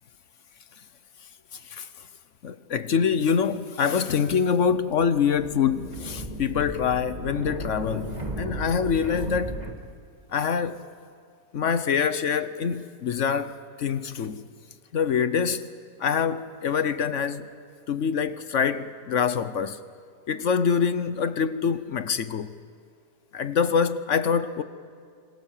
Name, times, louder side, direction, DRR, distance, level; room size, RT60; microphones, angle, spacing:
voice 1, 2.4-9.6 10.3-10.8 11.5-14.4 14.9-15.7 16.0-17.5 17.9-19.8 20.3-22.5 23.3-24.6, left 6 dB, 55° left, 1.0 m, -25 dB
sound 1, 4.8-9.8, right 1 dB, 25° right, 2.0 m, -35 dB
26.5 x 26.5 x 7.4 m
omnidirectional pair, 1.8 m